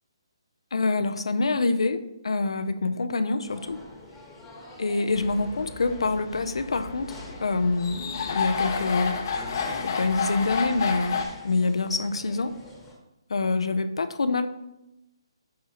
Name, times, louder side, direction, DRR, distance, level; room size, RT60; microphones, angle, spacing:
voice 1, 0.7-3.8 4.8-9.1 9.8-12.5 13.3-14.5, left 3 dB, 85° left, 10 dB, 0.6 m, -26 dB
sound 1, 3.4-12.9, left 1 dB, 5° left, 1.3 m, -46 dB
sound 2, 5.1-11.3, left 5 dB, 45° left, 0.8 m, -31 dB
8.4 x 5.6 x 3.0 m, 0.91 s
hypercardioid pair, 165°, 3 cm